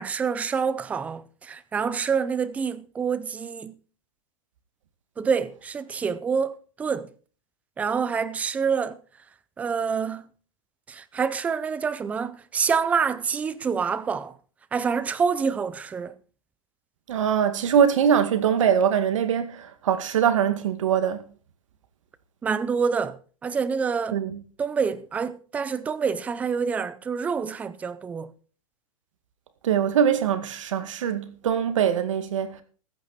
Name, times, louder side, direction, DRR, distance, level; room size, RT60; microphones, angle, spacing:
voice 1, 0.0-3.8 5.2-7.1 7.8-9.0 9.6-10.3 10.9-14.4 14.7-16.2 22.4-24.2 24.6-28.3, right 6 dB, 10° right, 0.5 m, -27 dB
voice 2, 17.1-21.2 24.1-24.3 29.6-32.6, right 8 dB, 65° right, 2.2 m, -22 dB
15.0 x 10.0 x 4.2 m
hypercardioid pair, 160°, 17 cm